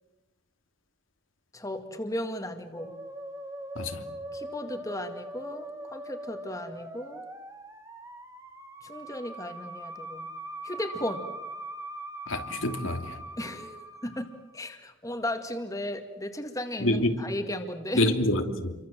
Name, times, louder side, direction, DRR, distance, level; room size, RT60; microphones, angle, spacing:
voice 1, 1.5-2.9 4.3-7.2 8.8-10.3 10.6-11.2 13.4-14.3 14.5-18.1, left 1 dB, 15° left, 6 dB, 2.1 m, -35 dB
Musical instrument, 2.7-14.5, right 1 dB, 15° right, 2.1 m, -41 dB
voice 2, 12.3-13.2 16.8-17.1 17.9-18.7, left 1 dB, 85° left, 5 dB, 3.0 m, -26 dB
29.0 x 24.0 x 7.6 m, 1.1 s
head